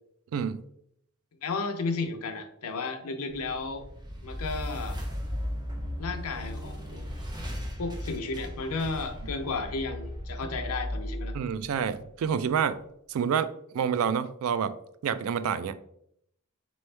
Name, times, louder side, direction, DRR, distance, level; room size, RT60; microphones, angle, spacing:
voice 1, 1.4-3.8 4.2-5.0 6.0-7.1 7.8-11.4, left 3 dB, 90° left, 0.6 m, -33 dB
sound 1, 3.3-12.5, equal, 20° right, 0.7 m, -37 dB
voice 2, 11.3-12.8 13.1-14.7 15.0-15.8, right 7 dB, 75° right, 0.3 m, -28 dB
4.3 x 3.1 x 3.2 m
head